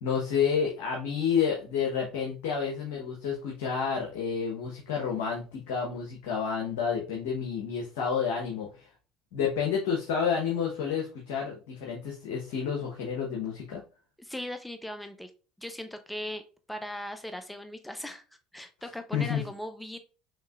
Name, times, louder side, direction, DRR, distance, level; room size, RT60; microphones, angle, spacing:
voice 1, 0.0-8.9 9.3-13.8 19.1-19.4, left 6 dB, 80° left, 0 dB, 0.9 m, -30 dB
voice 2, 14.2-15.3 15.6-16.4 16.7-20.0, left 1 dB, 5° left, 8 dB, 0.6 m, -39 dB
5.7 x 2.8 x 2.4 m, 0.35 s
hypercardioid pair, 80°, 0 cm